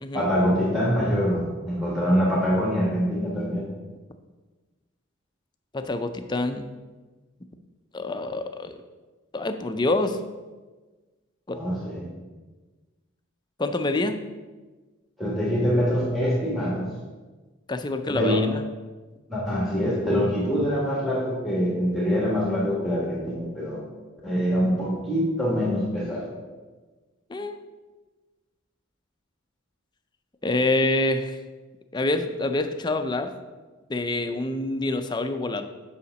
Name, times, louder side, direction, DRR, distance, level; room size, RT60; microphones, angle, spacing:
voice 1, 0.1-3.7 11.5-12.1 15.2-16.9 18.1-18.5 19.3-23.8 24.2-26.3, equal, ahead, -5 dB, 1.3 m, -24 dB
voice 2, 5.7-6.7 7.9-8.8 9.3-10.2 11.5-11.6 13.6-14.2 17.7-18.6 27.3-27.6 30.4-31.4 31.9-33.3 33.9-35.7, left 2 dB, 20° left, 8 dB, 0.4 m, -26 dB
5.6 x 4.9 x 6.4 m, 1.3 s
head